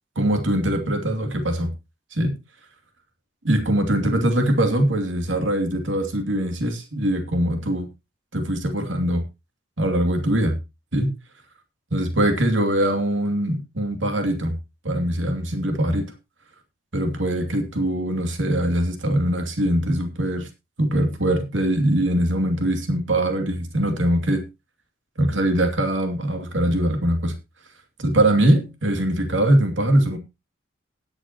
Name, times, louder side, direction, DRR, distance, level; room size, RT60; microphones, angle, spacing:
voice 1, 0.2-1.7 2.1-2.3 3.4-7.9 8.3-9.2 9.8-10.6 10.9-11.1 11.9-14.6 14.8-16.1 16.9-20.5 20.8-24.4 25.2-27.3 28.0-30.2, right 1 dB, 85° right, 6 dB, 2.6 m, -22 dB
18.5 x 8.2 x 2.9 m, 0.24 s
head